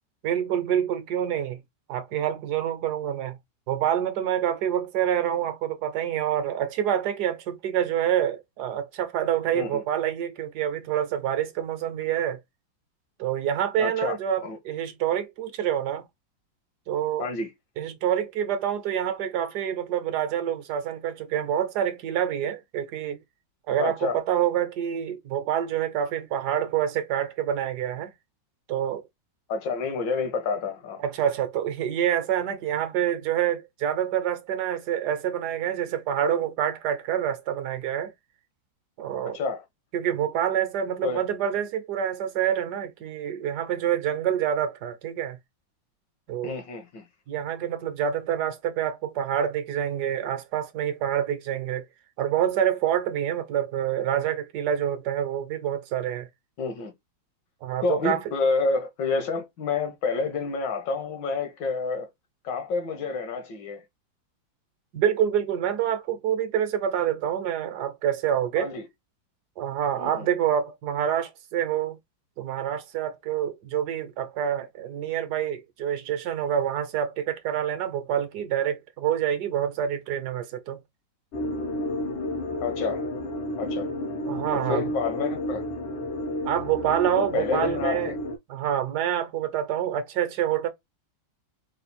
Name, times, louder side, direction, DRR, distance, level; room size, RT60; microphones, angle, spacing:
voice 1, 0.2-1.6 1.9-3.4 3.7-12.4 13.2-16.1 16.9-17.3 17.8-23.2 23.7-28.1 28.7-29.0 31.0-38.1 39.0-39.4 39.9-45.4 46.3-46.5 47.3-51.8 52.2-56.3 57.6-58.2 64.9-68.7 69.6-72.0 72.4-80.8 84.3-84.8 86.4-88.1 88.5-90.7, right 10 dB, 65° right, 1.2 m, -27 dB
voice 2, 13.8-14.6 17.2-17.5 23.8-24.2 29.5-31.0 39.2-39.6 41.0-41.2 46.4-47.1 56.6-56.9 57.8-62.1 62.4-63.8 68.6-68.9 70.0-70.3 82.6-83.1 83.6-83.9 84.5-85.6 87.1-88.2, left 4 dB, 70° left, 1.6 m, -29 dB
sound 1, 81.3-88.4, left 1 dB, 90° left, 1.8 m, -31 dB
4.2 x 2.4 x 4.0 m
omnidirectional pair, 2.1 m